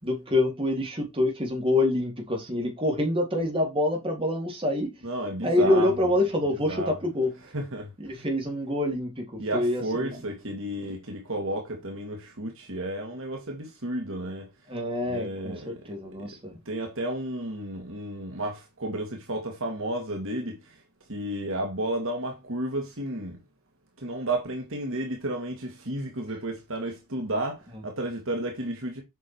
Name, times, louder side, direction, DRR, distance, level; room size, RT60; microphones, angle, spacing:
voice 1, 0.0-4.9 5.4-7.3 8.0-10.2 14.7-16.6, left 1 dB, 25° right, 3.5 m, -26 dB
voice 2, 5.0-5.9 6.7-6.9 7.5-8.2 9.4-14.5 15.1-15.8 16.2-16.4 16.7-20.8 21.1-23.4 24.0-29.0, right 1 dB, 60° right, 2.3 m, -32 dB
8.1 x 6.2 x 4.7 m
head